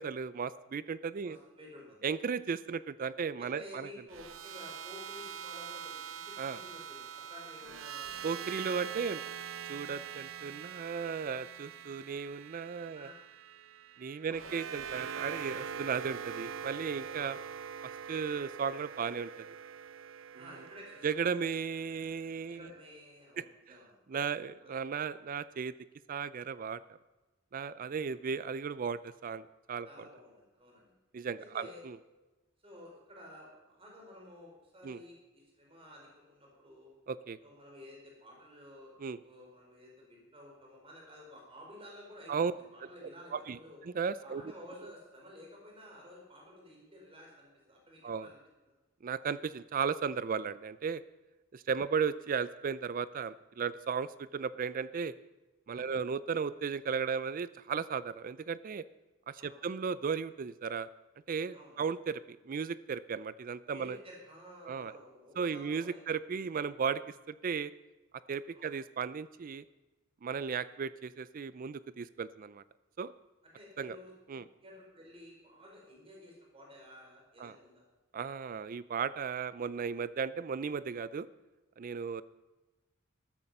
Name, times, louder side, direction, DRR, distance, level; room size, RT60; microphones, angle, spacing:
voice 1, 0.0-1.4 2.0-3.9 6.4-6.6 8.2-9.2 9.7-13.1 14.0-17.4 18.1-19.4 21.0-22.6 23.4-23.5 24.1-25.7 26.1-26.8 27.5-30.1 31.1-32.0 34.8-35.0 37.1-37.4 39.0-39.2 42.3-42.5 43.0-43.6 43.8-44.4 48.0-48.3 49.0-51.0 51.5-55.1 55.7-58.8 59.3-60.9 61.3-64.0 64.7-64.9 65.4-67.7 68.3-69.6 70.2-72.6 73.0-73.1 73.8-74.0 74.3-74.4 77.4-77.6 78.1-81.3 81.8-82.2, right 6 dB, 45° right, 16 dB, 0.4 m, -35 dB
voice 2, 1.2-2.1 3.4-8.3 8.6-9.0 11.9-12.2 12.8-13.1 14.2-14.6 16.9-17.2 20.3-21.3 22.5-24.0 24.6-24.7 27.8-27.9 29.8-30.9 31.4-31.8 32.6-36.9 37.4-38.9 39.2-43.8 44.2-48.4 48.6-48.7 55.7-55.9 59.4-59.6 61.5-61.8 63.7-66.0 68.5-68.7 73.5-74.1 74.6-77.9, left 1 dB, 30° right, -2 dB, 4.4 m, -52 dB
sound 1, 4.1-22.3, right 8 dB, 85° right, 0.7 m, -44 dB
13.5 x 13.5 x 5.4 m, 1.1 s
head